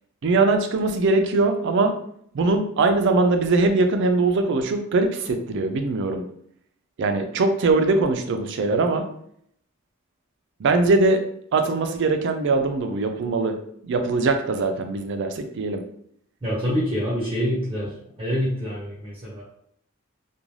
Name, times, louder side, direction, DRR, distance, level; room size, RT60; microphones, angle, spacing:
voice 1, 0.2-1.9 2.3-6.2 7.0-9.1 10.6-11.2 11.5-13.5 13.8-15.8, right 3 dB, 60° right, 7 dB, 0.4 m, -21 dB
voice 2, 16.4-17.9 18.2-19.4, equal, 25° right, -7 dB, 0.9 m, -26 dB
2.5 x 2.2 x 3.1 m, 0.69 s
head